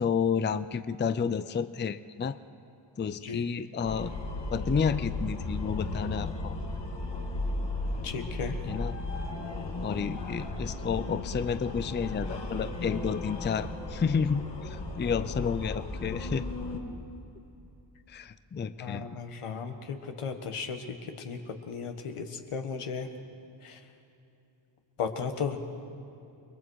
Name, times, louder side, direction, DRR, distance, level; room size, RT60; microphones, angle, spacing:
voice 1, 0.0-2.4 3.0-4.1 4.5-6.6 8.6-8.9 9.8-16.4 18.1-19.1, left 6 dB, 25° left, 13 dB, 0.4 m, -30 dB
sound 1, 3.8-16.8, left 2 dB, 55° left, 2.4 m, -35 dB
voice 2, 8.0-8.6 18.8-23.1 23.6-23.8 25.0-25.6, left 6 dB, 90° left, 5 dB, 1.7 m, -35 dB
29.5 x 21.5 x 4.7 m, 2.8 s
wide cardioid pair, 125°, 50 cm